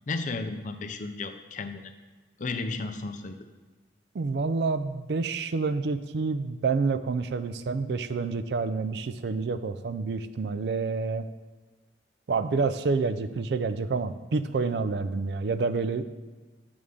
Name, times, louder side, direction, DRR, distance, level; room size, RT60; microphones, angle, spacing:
voice 1, 0.1-1.9 2.4-3.4, left 3 dB, 45° left, 8 dB, 0.5 m, -33 dB
voice 2, 4.1-11.2 12.3-16.0, right 4 dB, 65° right, 11 dB, 0.4 m, -28 dB
6.9 x 3.7 x 6.4 m, 1.3 s
head